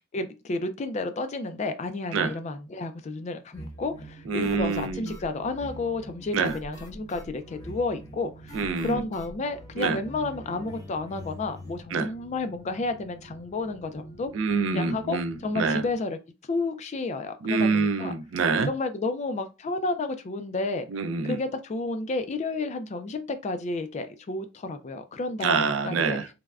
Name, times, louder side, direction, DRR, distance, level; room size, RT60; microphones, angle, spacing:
voice 1, 0.1-14.3 14.7-16.2 16.5-18.1 18.7-20.9 21.2-26.3, left 3 dB, 35° left, 0.4 m, -31 dB
sound 1, 3.5-11.8, left 1 dB, 20° left, 0.7 m, -44 dB
sound 2, 3.7-16.0, right 4 dB, 80° left, 0.8 m, -50 dB
voice 2, 4.3-5.1 6.3-6.5 8.5-9.0 9.8-10.0 11.9-12.1 14.3-15.8 17.4-18.7 20.9-21.4 25.4-26.3, right 4 dB, 70° right, 0.4 m, -26 dB
3.3 x 2.1 x 2.4 m
head